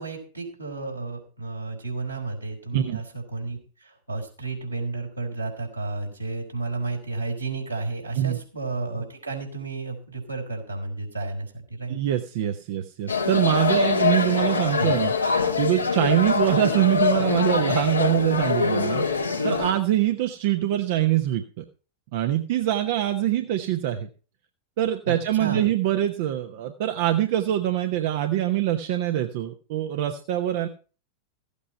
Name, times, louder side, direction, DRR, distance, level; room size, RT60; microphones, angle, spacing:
voice 1, 0.0-12.0 14.8-14.9 25.1-25.6, right 3 dB, 85° right, -1 dB, 4.6 m, -32 dB
voice 2, 11.9-15.1 15.6-21.6 22.1-24.1 24.8-30.7, right 13 dB, 50° right, 7 dB, 0.9 m, -24 dB
sound 1, 13.1-19.7, left 5 dB, 80° left, 1.6 m, -24 dB
15.0 x 8.5 x 4.3 m, 0.38 s
figure-of-eight pair, 90°, 0 cm